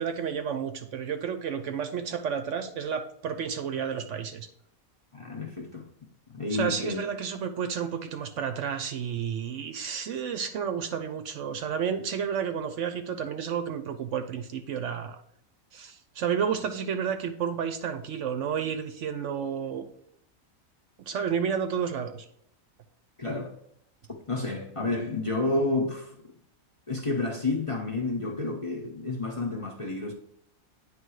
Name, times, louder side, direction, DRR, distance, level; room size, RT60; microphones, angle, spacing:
voice 1, 0.0-4.5 6.5-15.2 15.7-19.9 21.0-22.2, right 7 dB, 65° right, 0.9 m, -31 dB
voice 2, 5.1-5.9 6.3-7.0 23.2-23.5 24.3-26.1 26.9-30.1, left 2 dB, 30° left, 0.7 m, -30 dB
9.1 x 3.3 x 4.7 m
omnidirectional pair, 1.5 m